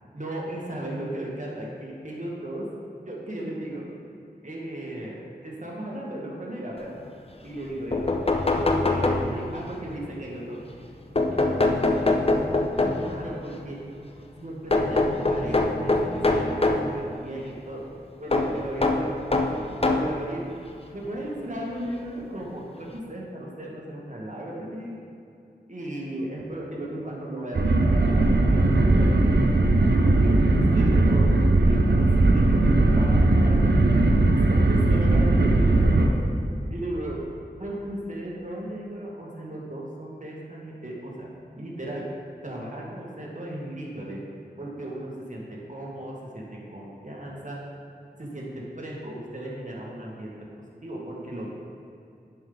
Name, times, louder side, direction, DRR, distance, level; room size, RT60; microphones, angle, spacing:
voice 1, 0.1-2.7 3.0-3.9 4.4-5.2 5.4-7.0 7.4-8.1 8.5-10.6 11.3-12.4 12.8-13.8 14.4-17.8 18.2-19.1 19.6-20.4 20.9-25.0 25.7-29.4 29.9-34.0 34.7-37.2 37.6-41.3 41.6-42.0 42.4-44.2 44.6-47.6 48.2-48.5 48.8-50.3 50.8-51.5, right 1 dB, 45° right, -4 dB, 1.9 m, -36 dB
sound 1, 7.6-7.7 7.9-9.7 11.2-13.2 14.7-16.9 18.3-20.2 21.0-21.1 22.5-22.6 22.9-23.0, left 2 dB, 35° left, 0.7 m, -23 dB
sound 2, 27.5-36.1, right 2 dB, 80° right, 0.7 m, -19 dB
10.5 x 5.5 x 4.0 m, 2.6 s
wide cardioid pair, 40°, 17 cm